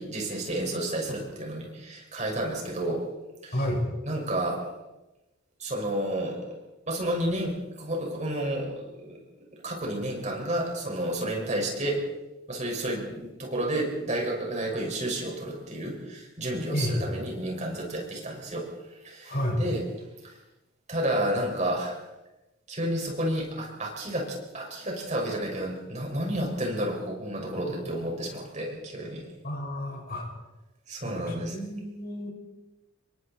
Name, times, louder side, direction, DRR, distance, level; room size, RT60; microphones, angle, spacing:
voice 1, 0.0-3.0 3.4-3.6 4.0-4.7 5.6-6.6 6.9-9.2 9.5-12.1 12.5-18.7 19.0-19.8 20.2-20.3 20.9-22.0 22.7-29.3 30.9-31.6, right 1 dB, 35° right, 0 dB, 6.3 m, -31 dB
voice 2, 3.5-3.8 16.7-17.1 19.3-19.6 29.4-30.3 31.0-32.3, equal, 45° left, 1 dB, 6.0 m, -30 dB
28.0 x 23.0 x 4.6 m, 1.0 s
head